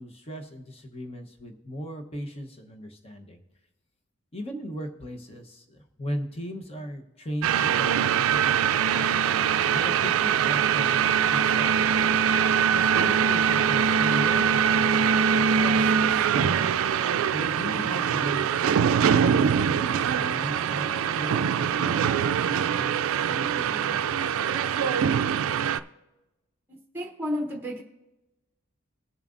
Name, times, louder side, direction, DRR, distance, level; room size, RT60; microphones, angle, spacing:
voice 1, 0.0-3.4 4.3-9.1 9.7-11.7 12.7-14.5 14.9-16.7 17.3-18.6 19.2-24.6, equal, 30° left, 4 dB, 0.9 m, -37 dB
sound 1, 7.4-25.8, right 8 dB, 80° right, 0.3 m, -23 dB
voice 2, 26.7-27.8, left 1 dB, 10° right, 3 dB, 0.8 m, -32 dB
19.0 x 7.2 x 2.5 m, 1.0 s
head